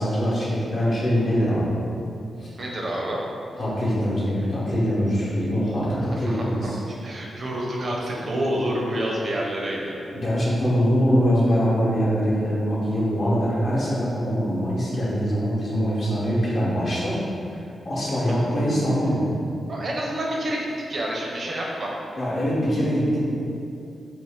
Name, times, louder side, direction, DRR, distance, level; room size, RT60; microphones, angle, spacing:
voice 1, 0.0-1.8 2.4-2.5 3.6-6.8 10.2-19.3 22.2-23.3, equal, 70° left, -8 dB, 0.8 m, -23 dB
voice 2, 2.6-3.2 6.3-10.0 19.7-21.9, right 1 dB, 60° right, -3 dB, 0.5 m, -28 dB
2.5 x 2.1 x 3.5 m, 2.6 s
supercardioid pair, 45°, 0 cm